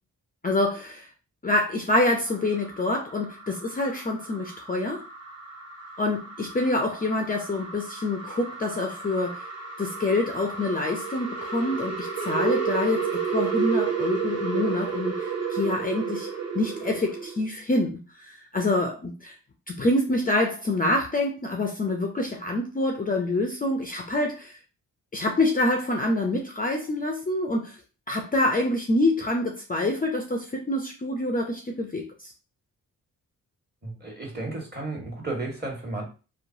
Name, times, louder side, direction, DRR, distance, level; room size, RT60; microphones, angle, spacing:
voice 1, 0.4-1.1 1.4-5.0 6.0-9.4 9.8-16.3 16.5-19.4 19.7-24.6 25.1-27.8 28.1-32.3, left 2 dB, 25° left, 2 dB, 0.5 m, -26 dB
sound 1, 2.3-17.4, right 6 dB, 45° right, 1.2 m, -32 dB
voice 2, 33.8-36.0, right 2 dB, 30° right, 0 dB, 1.4 m, -33 dB
3.0 x 2.1 x 2.6 m, 0.33 s
cardioid pair, 55°, 35 cm